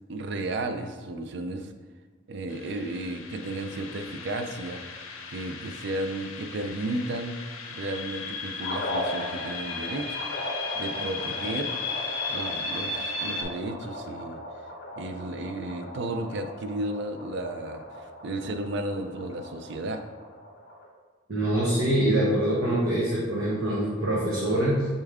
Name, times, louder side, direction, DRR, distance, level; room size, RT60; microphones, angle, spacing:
voice 1, 0.1-1.7 2.3-7.4 7.7-10.2 10.7-11.7 12.3-14.4 15.0-20.0, right 2 dB, 60° right, 7 dB, 0.4 m, -33 dB
sound 1, 2.5-13.4, left 4 dB, 85° left, 0.5 m, -35 dB
sound 2, 8.6-20.9, left 1 dB, 50° left, 0.9 m, -38 dB
voice 2, 21.3-24.9, right 1 dB, 85° right, -7 dB, 1.0 m, -24 dB
4.3 x 3.4 x 3.5 m, 1.5 s
head